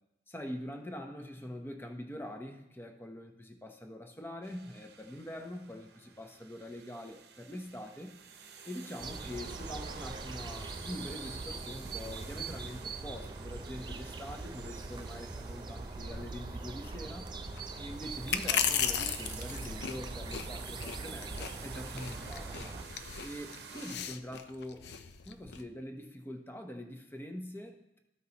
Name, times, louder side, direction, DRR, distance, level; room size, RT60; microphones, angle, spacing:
voice 1, 0.3-8.2 8.7-17.3 17.8-22.6 23.2-24.9 25.3-28.0, left 1 dB, 10° left, 4 dB, 0.7 m, -44 dB
sound 1, 4.4-24.0, right 6 dB, 65° right, 0.8 m, -50 dB
sound 2, 9.0-22.9, right 3 dB, 25° right, 0.4 m, -42 dB
sound 3, 15.1-25.6, left 8 dB, 65° left, 0.5 m, -38 dB
13.5 x 5.5 x 2.9 m, 0.87 s
head